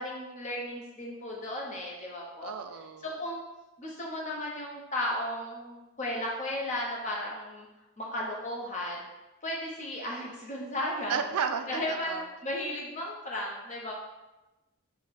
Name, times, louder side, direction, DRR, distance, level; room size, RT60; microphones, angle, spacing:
voice 1, 0.0-2.5 3.0-3.4 3.8-7.7 8.0-9.0 9.4-11.2 11.7-13.9, left 1 dB, 35° left, -3 dB, 0.9 m, -35 dB
voice 2, 2.4-3.2 11.1-12.3, right 6 dB, 90° right, 7 dB, 0.4 m, -33 dB
5.2 x 2.2 x 4.0 m, 1.0 s
head